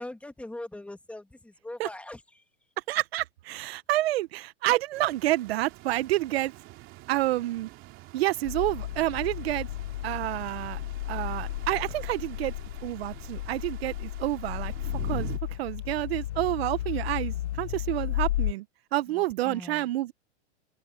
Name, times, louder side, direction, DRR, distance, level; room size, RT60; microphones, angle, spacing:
voice 1, 0.0-2.4 19.1-19.9, left 1 dB, 5° left, 2.1 m, -41 dB
voice 2, 2.9-6.5 7.1-7.7 8.1-9.7 10.0-10.8 11.1-12.5 12.8-18.6 18.9-20.1, right 16 dB, 55° right, 1.1 m, -29 dB
sound 1, 4.9-15.4, right 20 dB, 35° right, 2.9 m, -47 dB
sound 2, 8.4-18.5, left 14 dB, 65° left, 0.9 m, -33 dB
open air
hypercardioid pair, 150°, 36 cm